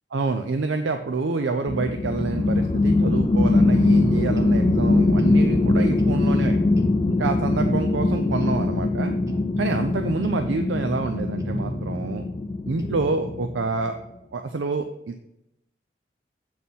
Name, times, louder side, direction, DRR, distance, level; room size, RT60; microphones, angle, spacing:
voice 1, 0.1-6.6 7.1-9.1 9.6-12.2 12.7-13.9 14.3-15.3, right 3 dB, 90° right, 7 dB, 0.5 m, -27 dB
sound 1, 1.7-13.7, left 2 dB, 30° left, 0.3 m, -22 dB
sound 2, 4.4-4.6 5.2-5.4 6.0-6.2 6.8-7.0 7.6-7.8 8.4-8.6 9.3-9.5 10.2-10.5 11.4-12.0 12.8-13.5, right 1 dB, 15° right, 0.7 m, -33 dB
7.6 x 4.2 x 5.4 m, 0.83 s
head